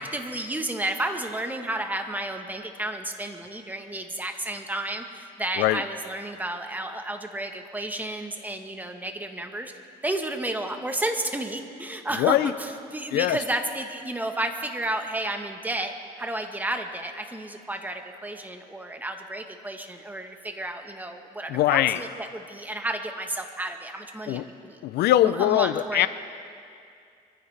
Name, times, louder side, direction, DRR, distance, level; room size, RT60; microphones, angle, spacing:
voice 1, 0.0-9.7 10.0-24.8 25.2-26.1, right 1 dB, 10° right, 5 dB, 1.2 m, -32 dB
voice 2, 12.2-12.5 13.1-13.4 21.5-22.0 24.3-24.5 24.8-26.1, left 13 dB, 75° left, 15 dB, 0.5 m, -22 dB
23.0 x 15.0 x 3.3 m, 2.4 s
cardioid pair, 110°, 17 cm